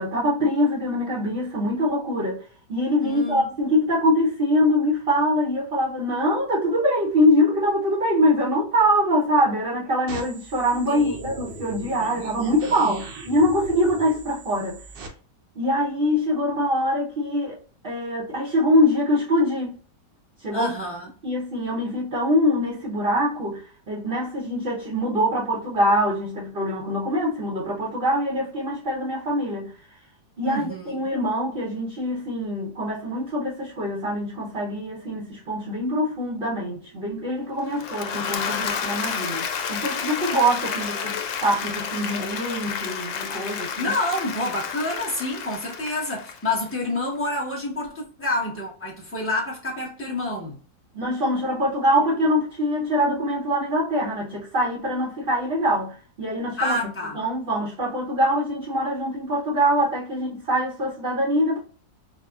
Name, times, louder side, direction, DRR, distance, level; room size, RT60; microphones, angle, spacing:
voice 1, 0.0-2.4 2.7-14.8 15.6-17.6 17.8-19.8 20.4-20.7 21.2-29.7 30.4-43.9 50.9-56.8 57.1-61.6, equal, 45° right, 0.7 m, -24 dB
voice 2, 3.0-3.5 10.9-11.4 20.5-21.1 30.4-31.0 43.8-50.6 56.6-57.2, left 2 dB, 15° left, 0.5 m, -28 dB
sound 1, 10.1-15.1, right 3 dB, 80° right, 1.4 m, -39 dB
Applause / Crowd, 37.6-46.8, left 6 dB, 85° left, 1.3 m, -30 dB
4.7 x 2.1 x 2.3 m
omnidirectional pair, 1.9 m